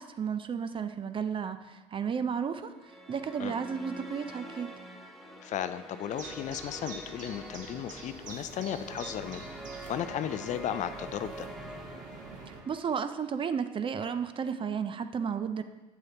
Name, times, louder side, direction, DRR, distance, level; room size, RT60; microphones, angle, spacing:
voice 1, 0.0-2.7 3.1-4.7 12.5-15.6, right 6 dB, 35° right, 10 dB, 0.5 m, -33 dB
sound 1, 2.7-13.1, right 1 dB, ahead, 0.9 m, -46 dB
voice 2, 5.4-9.5 9.9-11.5, left 10 dB, 50° left, 11 dB, 0.4 m, -35 dB
sound 2, 6.1-12.6, right 4 dB, 55° right, 1.2 m, -46 dB
7.7 x 7.3 x 2.9 m, 1.1 s
supercardioid pair, 80°, 15 cm